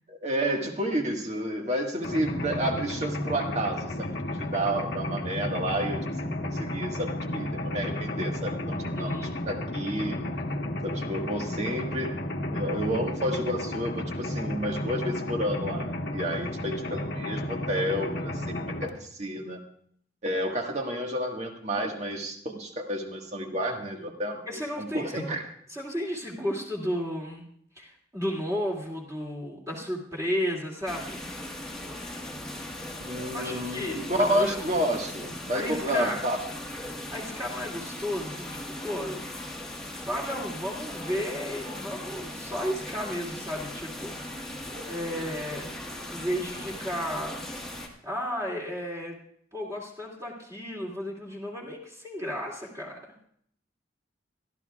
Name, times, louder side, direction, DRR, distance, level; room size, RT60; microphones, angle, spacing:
voice 1, 0.1-9.1 9.5-10.2 10.8-12.1 12.5-18.3 18.6-19.6 20.2-25.5 33.0-36.4, equal, 35° right, 2 dB, 1.6 m, -30 dB
Mechanisms, 2.0-18.9, left 1 dB, 60° left, 1.3 m, -32 dB
voice 2, 8.9-9.4 24.5-25.3 25.7-27.4 27.8-31.2 33.3-34.6 35.5-36.3 37.1-39.2 39.9-44.1 44.9-45.7 46.1-47.4 48.0-49.2 49.5-53.0, equal, 15° right, -3 dB, 2.5 m, -33 dB
sound 1, 30.9-47.9, left 1 dB, 5° left, 1.5 m, -39 dB
sound 2, 41.0-41.2 41.6-41.9 44.6-46.1 46.5-47.4 47.7-47.9, equal, 65° right, 6.5 m, -48 dB
23.0 x 13.0 x 2.4 m, 0.64 s
head